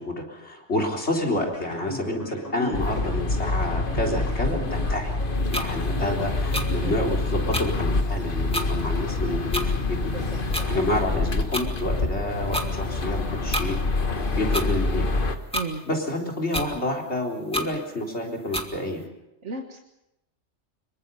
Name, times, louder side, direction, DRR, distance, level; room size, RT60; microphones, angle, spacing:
voice 1, 0.0-5.1 5.5-10.1 10.7-13.8 14.4-15.1 15.9-19.1, left 1 dB, 70° left, 0 dB, 4.1 m, -29 dB
sound 1, 1.4-7.4, equal, 35° left, 5.9 m, -37 dB
sound 2, 2.7-15.4, left 3 dB, 50° left, 1.6 m, -26 dB
sound 3, 5.5-5.7 6.5-6.7 7.5-7.7 8.5-8.7 9.5-9.7 10.5-10.7 11.5-11.7 12.5-12.7 13.5-13.7 14.5-14.7 15.5-15.7 16.5-16.7 17.5-17.7 18.5-18.7, equal, 5° left, 2.0 m, -28 dB
voice 2, 10.1-10.8 15.5-15.8 19.4-19.8, right 4 dB, 80° right, 3 dB, 1.9 m, -34 dB
26.0 x 23.0 x 5.5 m, 0.88 s
omnidirectional pair, 1.2 m